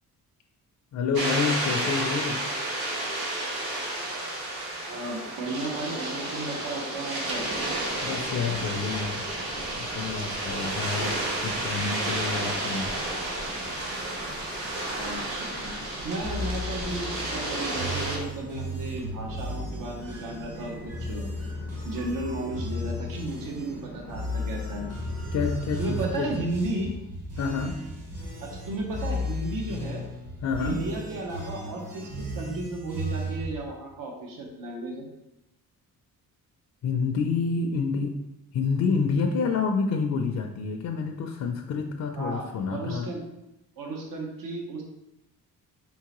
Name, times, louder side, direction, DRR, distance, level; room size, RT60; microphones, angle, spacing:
voice 1, 0.9-2.4 8.0-9.2 9.7-12.9 25.3-26.3 27.4-27.8 30.4-30.8 36.8-38.1 38.5-43.1, left 5 dB, 50° left, 3 dB, 0.4 m, -28 dB
sound 1, 1.1-18.2, right 1 dB, 90° right, 1.1 m, -31 dB
voice 2, 4.9-7.5 11.5-11.7 14.8-15.7 16.0-21.2 21.8-24.9 25.8-26.9 28.4-30.0 30.6-35.0 42.2-43.2 43.8-44.8, right 2 dB, 65° right, 1 dB, 0.9 m, -34 dB
sound 2, 7.3-25.9, right 1 dB, 25° right, 0.7 m, -45 dB
sound 3, 16.2-33.5, left 1 dB, 40° right, 1.3 m, -35 dB
4.0 x 3.6 x 3.0 m, 0.92 s
cardioid pair, 110°, 36 cm